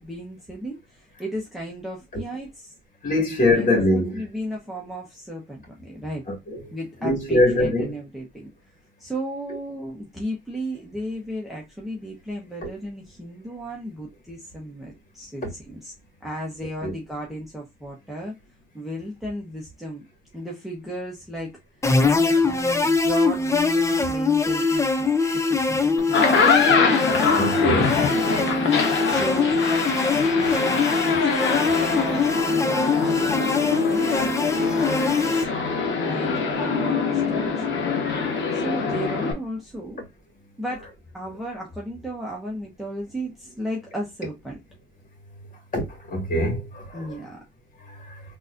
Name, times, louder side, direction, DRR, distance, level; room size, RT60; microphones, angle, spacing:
voice 1, 0.0-2.7 3.5-6.2 6.7-15.9 16.2-18.3 18.7-20.0 20.3-21.8 22.5-25.1 25.3-26.6 28.2-35.5 36.0-37.8 38.5-40.0 40.6-40.9 41.1-44.6 46.9-47.4, right 1 dB, ahead, 1.1 m, -35 dB
voice 2, 3.0-4.2 6.3-6.6 7.0-7.9 12.6-12.7 16.8-16.9 27.4-28.0 38.3-38.4 45.7-47.1 47.9-48.2, left 1 dB, 40° left, 1.9 m, -23 dB
sound 1, 21.8-35.4, left 4 dB, 15° left, 0.6 m, -22 dB
sound 2, 26.0-39.3, left 5 dB, 70° left, 1.1 m, -24 dB
3.8 x 2.8 x 2.5 m
cardioid pair, 90°, 20 cm